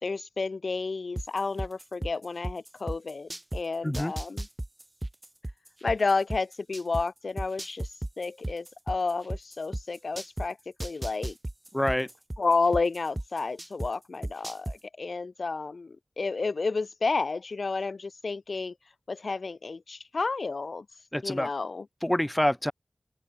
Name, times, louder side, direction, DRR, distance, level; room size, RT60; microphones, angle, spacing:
voice 1, 0.0-4.5 5.8-7.9 8.2-11.4 12.4-18.7 19.1-20.9 21.2-21.9, left 4 dB, 85° left, 3.5 m, -31 dB
sound 1, 1.2-3.6 3.9-7.0 7.4-10.5 10.8-13.9 14.2-14.8, right 1 dB, 20° right, 5.1 m, -34 dB
voice 2, 11.7-12.1 21.1-21.5 22.0-22.7, left 1 dB, 15° left, 5.3 m, -26 dB
wide cardioid pair, 60°, 0 cm